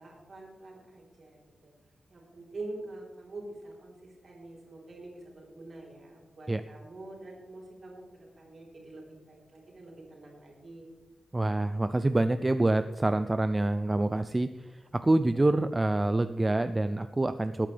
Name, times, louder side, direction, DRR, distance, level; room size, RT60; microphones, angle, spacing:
voice 1, 0.0-1.7 2.1-10.9, right 2 dB, 45° right, -2 dB, 3.6 m, -46 dB
voice 2, 11.3-17.7, right 2 dB, 15° right, 10 dB, 0.3 m, -26 dB
19.5 x 8.7 x 3.3 m, 1.2 s
wide cardioid pair, 170°, 0 cm